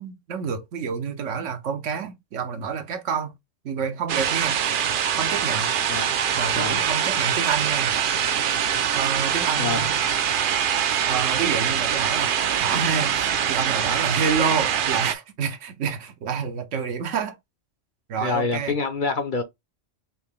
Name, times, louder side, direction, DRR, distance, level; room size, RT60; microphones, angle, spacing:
voice 1, 0.0-3.3 3.6-4.6 5.2-5.7 6.4-8.0 8.9-10.0 11.1-17.4 18.1-18.7, right 6 dB, 80° right, 1.1 m, -28 dB
sound 1, 4.1-15.1, right 8 dB, 60° right, 0.6 m, -23 dB
voice 2, 5.9-6.2 6.5-6.8 9.6-9.9 18.2-19.4, left 4 dB, 50° left, 0.7 m, -26 dB
5.7 x 2.2 x 3.5 m
omnidirectional pair, 1.3 m